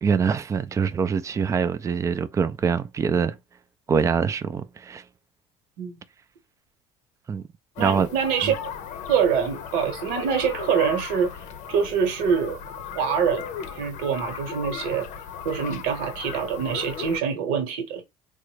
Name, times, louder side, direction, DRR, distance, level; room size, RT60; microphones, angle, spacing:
voice 1, 0.0-3.4 3.9-5.0 7.3-7.4 7.8-8.1 8.4-8.5, right 6 dB, 20° right, 0.4 m, -24 dB
sound 1, 7.8-17.2, left 7 dB, 65° left, 0.7 m, -36 dB
voice 2, 7.8-8.7 9.1-11.3 11.7-12.6 12.9-13.5 13.7-15.1 15.4-18.0, right 7 dB, 80° right, 1.0 m, -25 dB
3.6 x 2.1 x 3.2 m
supercardioid pair, 105°, 14 cm